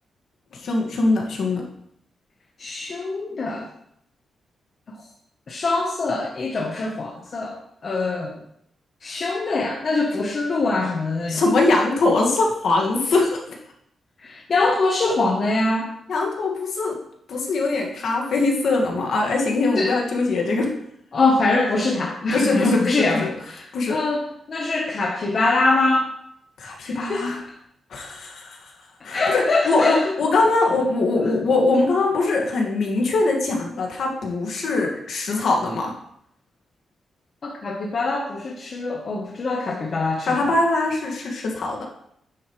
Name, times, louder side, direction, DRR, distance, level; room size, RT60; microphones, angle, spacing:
voice 1, 0.6-1.6 11.3-13.4 16.1-17.0 17.3-20.7 22.3-23.3 23.7-24.0 26.6-27.4 27.9-28.6 29.0-35.9 40.2-41.9, left 3 dB, 60° left, 0 dB, 1.9 m, -22 dB
voice 2, 2.6-3.7 4.9-5.0 5.5-7.6 7.8-8.4 9.0-11.4 14.2-15.9 19.8-19.9 21.1-24.2 24.5-26.1 26.8-27.3 29.1-30.1 31.2-31.3 34.7-34.9 37.4-40.4, left 3 dB, 40° left, -1 dB, 1.1 m, -23 dB
9.5 x 8.1 x 3.2 m, 0.72 s
wide cardioid pair, 165°, 0 cm